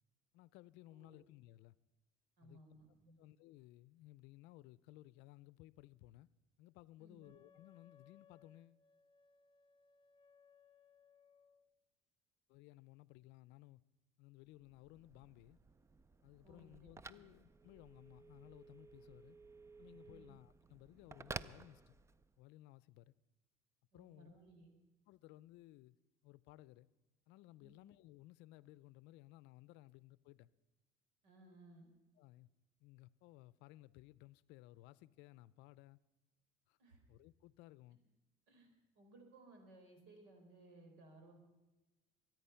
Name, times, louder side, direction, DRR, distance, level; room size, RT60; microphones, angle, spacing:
voice 1, 0.3-1.8 2.4-2.6 3.2-6.3 6.6-8.8 12.5-13.8 14.2-15.6 16.2-19.4 19.8-22.0 22.4-23.1 23.9-24.3 25.1-26.0 26.2-26.9 27.3-30.5 32.2-32.5 32.8-36.0 36.7-36.8 37.1-38.0, left 17 dB, 70° left, 0.5 m, -59 dB
voice 2, 2.4-3.2 7.0-7.3 16.4-17.2 20.0-20.3 23.9-24.7 27.6-27.7 31.2-31.9 36.8-37.0 38.5-38.7 39.0-41.4, right 2 dB, 80° right, 4.2 m, -61 dB
Wind instrument woodwind instrument, 7.2-11.7, left 6 dB, 30° left, 0.7 m, -68 dB
Telephone, 14.5-22.4, right 4 dB, 15° right, 0.4 m, -54 dB
23.5 x 9.3 x 5.7 m
supercardioid pair, 105°, 19 cm